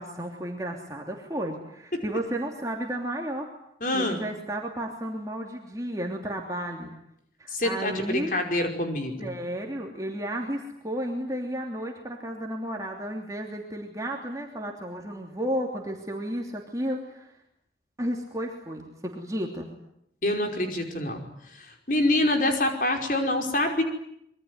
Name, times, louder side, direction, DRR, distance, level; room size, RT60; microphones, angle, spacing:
voice 1, 0.0-3.5 3.9-7.0 7.4-8.4 9.2-17.3 18.0-19.7, right 1 dB, 20° right, 0 dB, 2.9 m, -33 dB
voice 2, 3.8-4.2 7.5-9.3 20.2-21.3 21.6-23.8, left 1 dB, 50° left, 4 dB, 5.2 m, -26 dB
26.0 x 23.0 x 9.6 m, 0.77 s
head